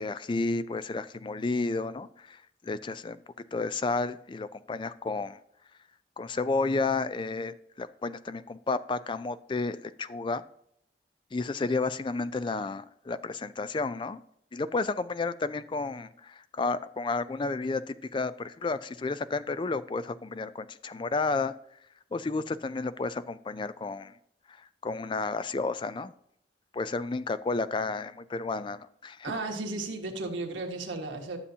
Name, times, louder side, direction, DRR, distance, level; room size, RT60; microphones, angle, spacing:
voice 1, 0.0-3.2 3.5-5.4 6.2-10.4 11.3-14.2 14.5-21.5 22.1-24.1 24.6-26.1 26.7-29.3, left 3 dB, 25° left, 0.3 m, -31 dB
voice 2, 29.2-31.4, right 2 dB, 85° right, 1.7 m, -34 dB
12.5 x 6.9 x 2.8 m
head